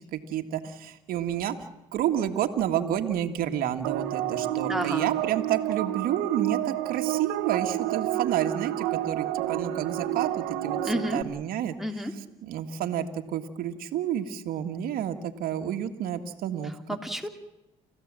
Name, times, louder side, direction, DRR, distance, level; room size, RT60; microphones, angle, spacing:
voice 1, 0.1-11.7 12.4-17.0, right 10 dB, 70° right, 5 dB, 1.9 m, -30 dB
sound 1, 3.8-11.2, right 13 dB, 90° right, 1.3 m, -30 dB
voice 2, 4.6-5.1 10.8-11.2 11.8-12.1 16.9-17.3, equal, ahead, 4 dB, 3.0 m, -30 dB
30.0 x 15.0 x 7.5 m, 0.91 s
supercardioid pair, 70°, 15 cm